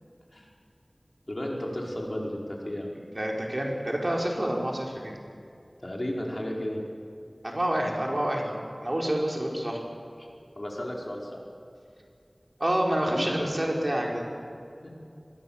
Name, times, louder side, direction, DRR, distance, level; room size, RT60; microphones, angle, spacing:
voice 1, 1.3-3.0 5.8-6.8 10.6-11.4 13.1-13.6, left 1 dB, 50° left, -2 dB, 5.0 m, -34 dB
voice 2, 2.9-5.1 7.4-9.8 12.6-14.2, right 1 dB, 45° right, -1 dB, 4.7 m, -28 dB
25.0 x 21.5 x 7.3 m, 2.5 s
wide cardioid pair, 40°, 0 cm